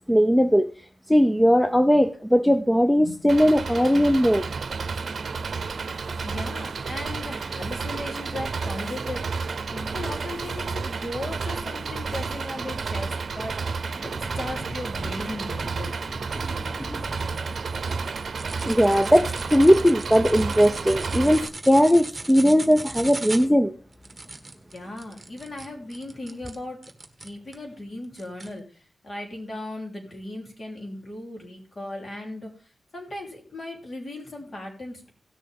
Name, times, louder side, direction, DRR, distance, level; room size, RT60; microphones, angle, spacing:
voice 1, 0.1-0.7 1.1-4.4 16.6-17.1 18.6-23.7, equal, ahead, 9 dB, 0.6 m, -19 dB
voice 2, 3.0-3.3 6.2-9.5 9.7-16.0 24.7-26.8 27.2-35.1, left 1 dB, 40° left, 0 dB, 3.4 m, -37 dB
Engine, 3.3-21.5, right 4 dB, 55° right, 0.8 m, -31 dB
sound 1, 18.4-27.6 28.2-28.5, right 3 dB, 20° right, 1.4 m, -38 dB
17.0 x 6.5 x 3.6 m, 0.38 s
wide cardioid pair, 115°, 0 cm